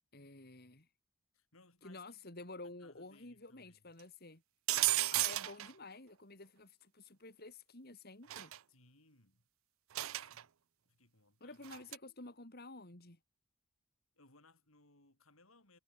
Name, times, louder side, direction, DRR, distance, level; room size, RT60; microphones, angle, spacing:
voice 1, 0.1-0.9 1.8-4.4 5.1-8.5 11.4-13.2, left 2 dB, 50° left, 3.4 m, -51 dB
voice 2, 1.3-2.2 2.6-3.9 8.7-9.5 9.9-10.5 10.8-11.7 14.1-15.8, left 3 dB, 75° left, 8.0 m, -66 dB
sound 1, 4.7-5.7 8.3-8.6 9.9-10.4 11.6-12.0, right 17 dB, 75° right, 0.5 m, -33 dB
head